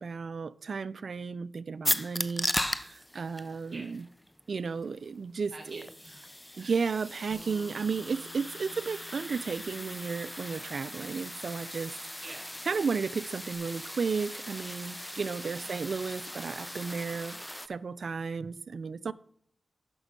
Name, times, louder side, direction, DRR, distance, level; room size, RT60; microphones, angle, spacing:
voice 1, 0.0-4.0 4.5-5.9 6.6-12.0 12.7-17.4 17.7-19.1, right 5 dB, 65° right, 0.4 m, -33 dB
sound 1, 1.8-17.7, left 1 dB, 10° left, 0.6 m, -38 dB
voice 2, 5.5-6.8 12.2-12.7 15.4-15.9, right 2 dB, 45° right, 4.8 m, -49 dB
Bass guitar, 7.3-13.6, left 3 dB, 30° left, 1.7 m, -56 dB
10.5 x 6.1 x 5.3 m
cardioid pair, 55°, 0 cm